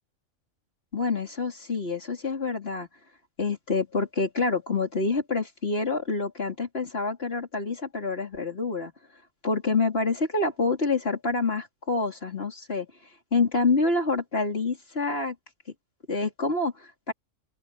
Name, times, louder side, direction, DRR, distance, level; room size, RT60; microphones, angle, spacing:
voice 1, 0.9-2.9 3.4-8.9 9.4-12.9 13.3-15.4 16.1-17.1, left 3 dB, 50° left, 3.7 m, -27 dB
open air
omnidirectional pair, 1.4 m